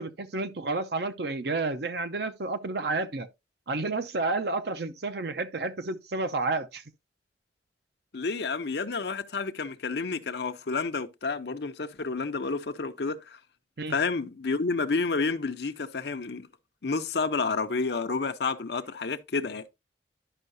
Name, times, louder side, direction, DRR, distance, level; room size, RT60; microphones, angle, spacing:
voice 1, 0.0-3.3 3.7-6.8 13.8-14.0, right 3 dB, 60° right, 0.7 m, -30 dB
voice 2, 8.1-13.4 13.9-16.5 16.8-19.6, left 4 dB, 60° left, 0.7 m, -30 dB
11.0 x 5.5 x 2.6 m
head